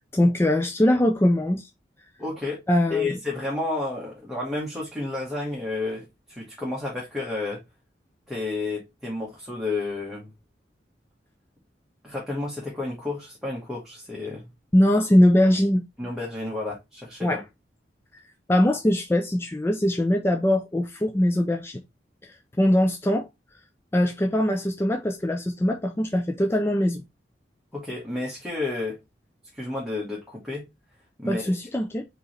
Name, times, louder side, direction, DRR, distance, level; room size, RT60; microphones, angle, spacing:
voice 1, 0.0-1.7 2.7-3.1 14.7-15.8 17.2-17.4 18.1-18.2 18.5-21.8 22.2-23.3 23.9-27.0 31.3-32.1, left 1 dB, 15° left, 0.4 m, -22 dB
voice 2, 2.2-2.6 2.9-7.6 8.3-10.3 12.0-14.5 16.0-17.4 27.7-29.0 29.5-30.6 31.2-31.5, left 2 dB, ahead, 1.2 m, -31 dB
4.7 x 3.0 x 3.2 m
head